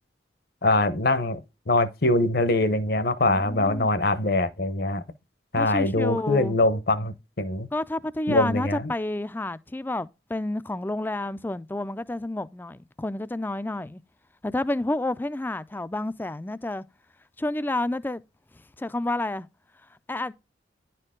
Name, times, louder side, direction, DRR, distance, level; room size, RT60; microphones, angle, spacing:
voice 1, 0.6-1.4 1.7-5.0 5.5-7.7 8.3-8.9, left 2 dB, 55° left, 0.8 m, -23 dB
voice 2, 3.2-4.1 5.5-6.6 7.7-14.0 14.4-16.8 17.4-18.2 18.5-19.5 20.1-20.3, left 1 dB, 10° left, 0.3 m, -30 dB
10.5 x 4.5 x 3.7 m
head